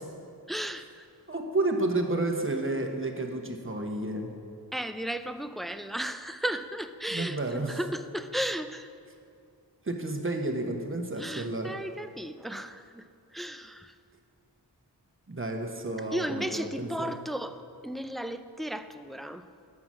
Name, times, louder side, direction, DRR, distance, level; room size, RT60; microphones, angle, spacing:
voice 1, 0.5-1.1 4.7-7.4 7.7-8.9 11.2-13.1 13.3-13.9 16.1-19.5, right 1 dB, ahead, 10 dB, 0.3 m, -35 dB
voice 2, 1.3-4.3 7.1-7.8 9.8-11.7 15.3-17.2, right 2 dB, 30° right, 3 dB, 1.1 m, -31 dB
9.7 x 5.8 x 7.5 m, 2.4 s
wide cardioid pair, 70°, 41 cm